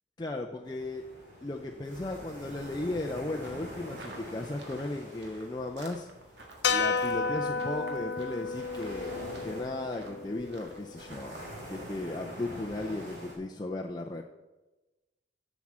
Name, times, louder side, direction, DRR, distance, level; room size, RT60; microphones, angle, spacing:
voice 1, 0.2-1.0 1.4-6.1 6.7-11.4 11.7-14.2, left 2 dB, 20° left, 1 dB, 0.5 m, -36 dB
sound 1, 0.7-13.4, equal, 40° right, 3.6 m, -46 dB
sound 2, 3.3-11.5, right 2 dB, 70° right, 1.6 m, -53 dB
sound 3, 6.6-11.0, left 5 dB, 75° left, 0.7 m, -32 dB
7.7 x 6.2 x 7.2 m, 1.1 s
head